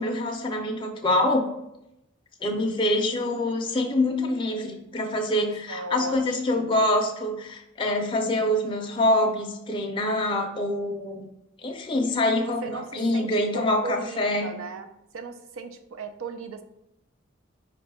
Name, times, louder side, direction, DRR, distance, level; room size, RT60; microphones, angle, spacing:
voice 1, 0.0-1.5 2.4-11.3 11.6-14.5, left 1 dB, 25° left, 1 dB, 0.5 m, -25 dB
voice 2, 5.4-6.8 12.6-14.9 15.1-16.6, right 3 dB, 90° right, 8 dB, 0.5 m, -37 dB
5.0 x 2.2 x 4.1 m, 0.84 s
head